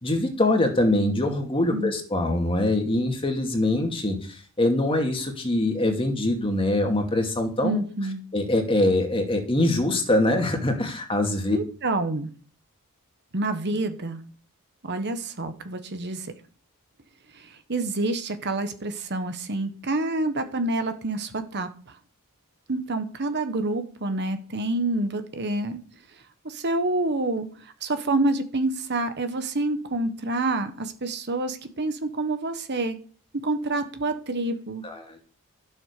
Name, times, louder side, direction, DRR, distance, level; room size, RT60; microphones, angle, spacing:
voice 1, 0.0-4.2 4.6-7.8 8.3-11.6 34.8-35.0, left 1 dB, 25° left, 4 dB, 2.3 m, -23 dB
voice 2, 7.6-8.2 11.5-12.3 13.3-14.2 14.8-16.3 17.3-22.0 22.7-25.8 26.4-27.5 27.8-33.0 33.4-34.8, right 2 dB, 50° right, 8 dB, 1.3 m, -27 dB
12.5 x 7.2 x 6.7 m, 0.42 s
head